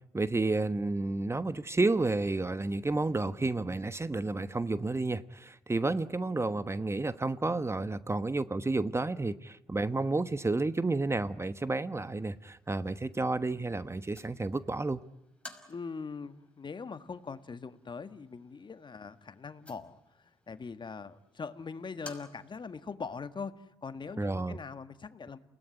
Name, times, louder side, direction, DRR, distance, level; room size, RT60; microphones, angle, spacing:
voice 1, 0.1-15.0 24.2-24.6, right 2 dB, 20° right, 14 dB, 1.1 m, -31 dB
sound 1, 9.8-22.8, left 2 dB, 10° left, 5.9 m, -57 dB
voice 2, 15.7-25.4, left 5 dB, 40° left, 11 dB, 1.8 m, -42 dB
29.0 x 18.0 x 10.0 m, 0.88 s
hypercardioid pair, 50°, 12 cm